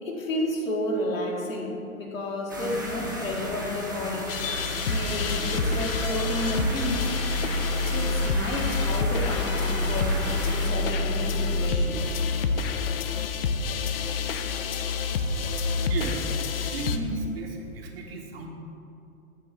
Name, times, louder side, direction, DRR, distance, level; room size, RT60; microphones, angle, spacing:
voice 1, 0.0-4.4 4.9-7.1 7.9-12.1, left 1 dB, 65° left, -1 dB, 1.7 m, -31 dB
sound 1, 2.5-10.7, equal, 15° right, 0.3 m, -35 dB
sound 2, 4.3-17.0, left 3 dB, 45° left, 0.5 m, -27 dB
voice 2, 15.4-18.5, right 2 dB, 40° right, 2 dB, 1.0 m, -35 dB
8.4 x 4.1 x 6.2 m, 2.6 s
figure-of-eight pair, 115°, 43 cm